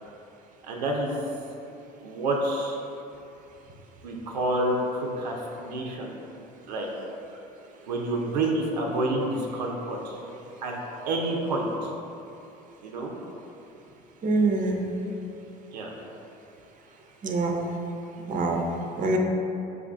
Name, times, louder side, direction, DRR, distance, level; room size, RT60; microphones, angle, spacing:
voice 1, 0.6-1.1 2.0-2.8 4.0-6.1 6.7-6.9 7.9-10.2 10.6-10.8 11.1-11.9 12.8-13.1 15.7-15.9, right 1 dB, 90° right, -1 dB, 0.5 m, -28 dB
voice 2, 14.2-14.9 17.2-17.7 18.3-18.7 19.0-19.2, right 3 dB, 40° right, 2 dB, 0.6 m, -25 dB
4.7 x 2.5 x 3.4 m, 2.8 s
hypercardioid pair, 70°, 21 cm